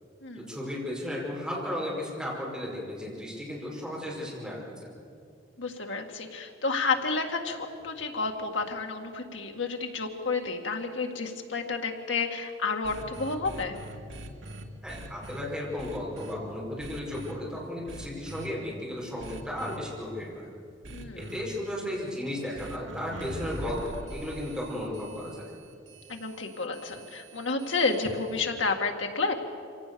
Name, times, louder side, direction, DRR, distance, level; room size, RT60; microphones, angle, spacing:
voice 1, 0.4-4.9 14.8-20.5 21.2-25.4, left 1 dB, 5° right, -5 dB, 5.5 m, -35 dB
voice 2, 5.6-13.8 20.9-21.3 26.1-29.3, left 4 dB, 75° left, 4 dB, 2.0 m, -30 dB
sound 1, 12.8-15.4 15.8-16.4 16.8-17.3 17.9-18.5 19.2-19.8 20.8-21.4 22.6-28.4, right 1 dB, 75° right, 2.0 m, -43 dB
25.5 x 17.5 x 7.0 m, 2.4 s
head